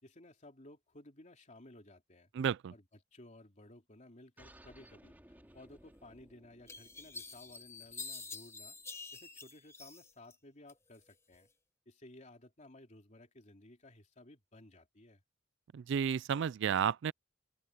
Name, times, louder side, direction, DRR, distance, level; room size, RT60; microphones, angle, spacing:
voice 1, 0.0-2.3 2.7-5.2 5.5-11.5 11.8-15.2, left 1 dB, 40° left, 3.2 m, -57 dB
voice 2, 2.4-2.7 15.7-17.1, right 8 dB, 65° right, 0.3 m, -32 dB
sound 1, 4.4-9.4, right 1 dB, 10° right, 2.7 m, -61 dB
sound 2, 6.0-6.1 6.7-10.4 10.7-11.4, left 4 dB, 15° left, 1.2 m, -47 dB
open air
head